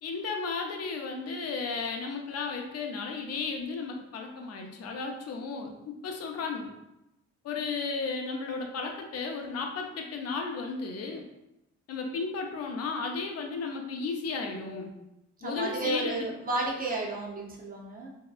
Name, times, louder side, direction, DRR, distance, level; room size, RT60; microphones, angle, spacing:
voice 1, 0.0-6.7 7.4-11.3 11.9-14.9 15.4-16.3, left 4 dB, 55° left, 3 dB, 0.5 m, -34 dB
voice 2, 15.4-18.1, right 2 dB, 30° right, -1 dB, 0.6 m, -32 dB
2.7 x 2.1 x 2.3 m, 0.89 s
cardioid pair, 90°, 30 cm